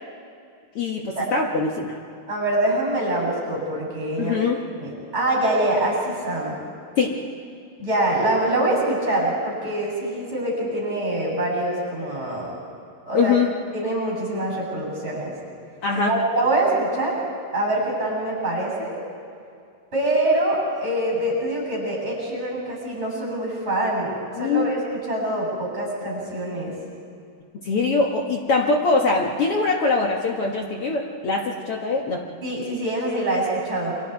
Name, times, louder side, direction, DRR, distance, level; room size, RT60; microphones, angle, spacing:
voice 1, 0.7-2.0 4.2-4.6 7.0-7.2 13.1-13.5 15.8-16.1 24.3-24.7 27.6-32.2, left 4 dB, 75° left, 0 dB, 1.3 m, -22 dB
voice 2, 2.3-4.4 4.8-6.6 7.8-12.5 13.1-13.3 13.7-15.3 16.0-17.2 17.5-19.0 19.9-26.7 32.4-34.0, right 1 dB, 15° right, -2 dB, 7.8 m, -24 dB
29.5 x 26.5 x 4.7 m, 2.4 s
omnidirectional pair, 5.0 m